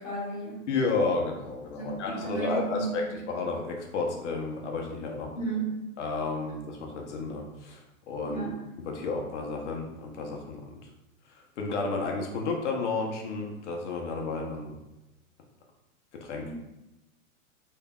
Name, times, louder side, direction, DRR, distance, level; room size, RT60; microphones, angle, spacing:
voice 1, 0.0-0.7 1.7-3.2 5.3-5.9 8.2-8.6 16.4-16.6, right 4 dB, 15° left, -8 dB, 1.2 m, -34 dB
voice 2, 0.7-5.3 6.0-8.4 8.8-10.7 11.3-14.8 16.1-16.5, left 3 dB, 55° left, 1 dB, 0.8 m, -32 dB
3.6 x 3.2 x 2.3 m, 0.98 s
hypercardioid pair, 160°, 42 cm